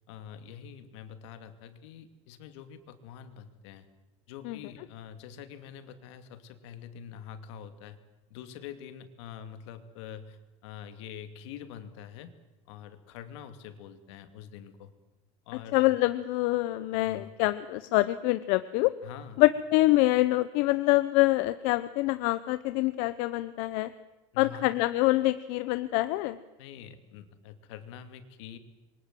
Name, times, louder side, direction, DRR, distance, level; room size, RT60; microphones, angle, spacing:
voice 1, 0.1-3.9 4.3-8.0 8.3-12.3 12.7-14.9 15.5-15.9 16.9-17.3 19.0-19.4 24.3-24.7 26.6-28.6, left 8 dB, 75° left, 9 dB, 2.7 m, -45 dB
voice 2, 15.7-18.9 19.4-23.9 24.4-26.4, left 18 dB, 55° left, 13 dB, 0.8 m, -25 dB
27.5 x 23.5 x 7.7 m, 1.0 s
cardioid pair, 165°, 15 cm